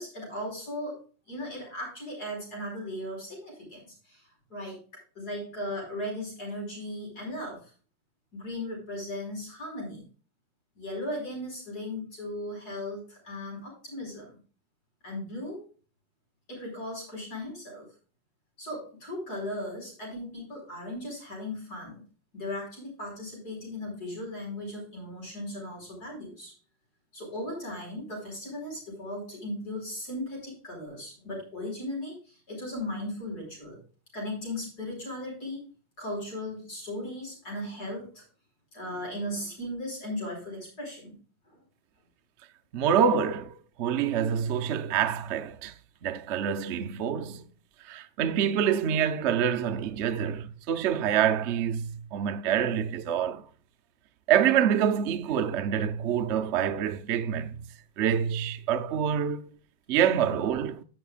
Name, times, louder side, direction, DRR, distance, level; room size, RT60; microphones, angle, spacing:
voice 1, 0.0-4.2 4.5-4.8 5.2-7.7 8.3-10.0 10.8-14.4 15.0-15.6 16.5-17.9 18.6-22.0 22.3-26.5 27.1-33.8 34.1-35.7 36.0-38.2 38.7-41.2 41.5-41.6 42.8-43.0, left 1 dB, 50° left, 5.5 m, -37 dB
voice 2, 42.7-43.5 43.8-45.7 46.0-47.4 47.9-53.4 54.3-57.6 58.0-59.4 59.9-60.8, right 8 dB, 70° right, 0.6 m, -26 dB
15.5 x 7.0 x 2.4 m
omnidirectional pair, 2.1 m